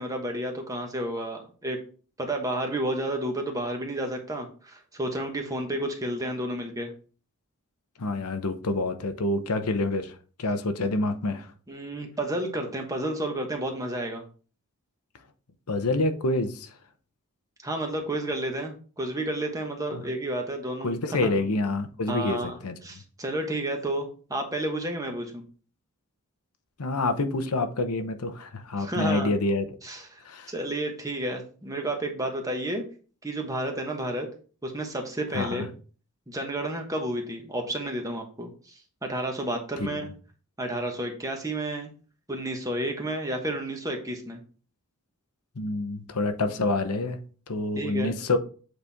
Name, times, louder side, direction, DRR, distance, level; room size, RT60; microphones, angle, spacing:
voice 1, 0.0-1.8 2.2-6.9 11.7-14.2 17.6-21.3 22.1-25.4 28.8-29.3 29.8-30.2 30.5-32.8 33.2-34.3 34.6-35.7 36.3-40.1 40.6-41.9 42.3-44.4 47.7-48.1, right 1 dB, 15° right, 1.2 m, -31 dB
voice 2, 8.0-10.1 10.4-11.5 15.7-16.7 19.9-20.0 20.8-22.7 26.8-29.6 30.2-30.5 35.3-35.7 39.8-40.0 45.6-47.2 47.5-48.4, left 2 dB, 90° left, 0.8 m, -27 dB
8.0 x 4.2 x 3.5 m
head